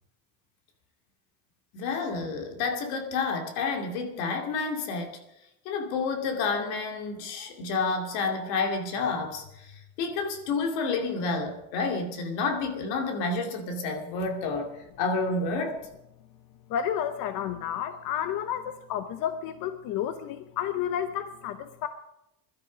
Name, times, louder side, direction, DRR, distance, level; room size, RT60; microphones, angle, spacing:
voice 1, 1.7-5.2 5.6-15.8, left 4 dB, 90° left, 4 dB, 2.7 m, -30 dB
voice 2, 16.7-21.9, left 9 dB, 55° left, 10 dB, 0.9 m, -31 dB
21.0 x 12.5 x 5.2 m, 0.89 s
cardioid pair, 165°, 39 cm